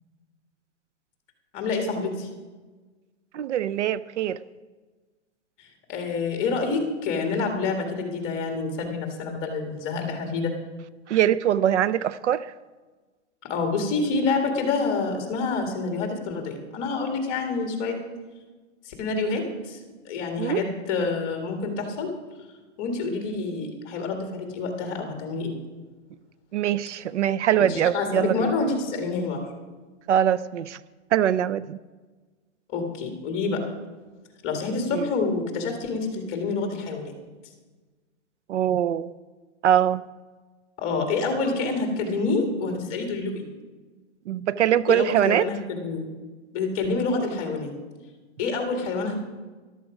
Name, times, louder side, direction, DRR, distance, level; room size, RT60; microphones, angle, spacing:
voice 1, 1.5-2.3 5.6-10.5 13.4-18.0 18.9-19.8 20.1-22.1 22.8-25.5 27.6-29.4 32.7-33.6 34.4-37.1 40.8-43.5 44.9-46.0 46.5-47.7 48.4-49.2, left 4 dB, 20° left, 1.8 m, -27 dB
voice 2, 3.3-4.4 11.1-12.5 20.4-20.6 26.5-28.5 30.1-30.8 31.1-31.8 34.9-35.1 38.5-39.1 39.6-40.0 44.3-45.5, right 10 dB, 70° right, 0.5 m, -23 dB
13.5 x 12.0 x 4.9 m
hypercardioid pair, 170°, 37 cm